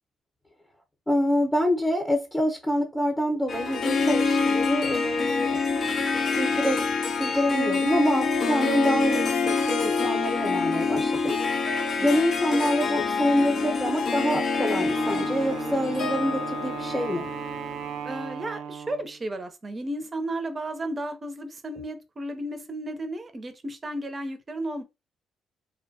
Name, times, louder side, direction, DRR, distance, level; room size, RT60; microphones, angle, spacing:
voice 1, 1.1-5.6 6.4-6.8 7.2-11.3 12.0-17.3, equal, 15° left, 0.7 m, -26 dB
Harp, 3.5-18.0, left 4 dB, 55° left, 0.5 m, -26 dB
Wind instrument woodwind instrument, 14.9-19.2, right 7 dB, 90° right, 0.3 m, -36 dB
voice 2, 18.0-24.8, right 1 dB, 30° right, 0.5 m, -34 dB
2.6 x 2.1 x 2.6 m
cardioid pair, 90°, 0 cm